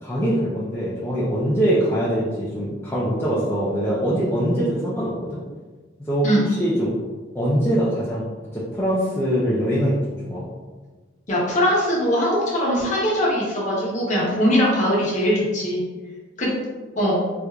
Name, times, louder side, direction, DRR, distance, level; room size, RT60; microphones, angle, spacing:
voice 1, 0.0-5.4 6.0-6.9 7.3-8.2 8.5-9.9 10.3-10.5, equal, 10° left, -10 dB, 0.5 m, -23 dB
voice 2, 11.3-15.8 16.4-16.5 17.0-17.2, equal, 35° left, -5 dB, 0.9 m, -21 dB
4.4 x 2.5 x 2.3 m, 1.3 s
head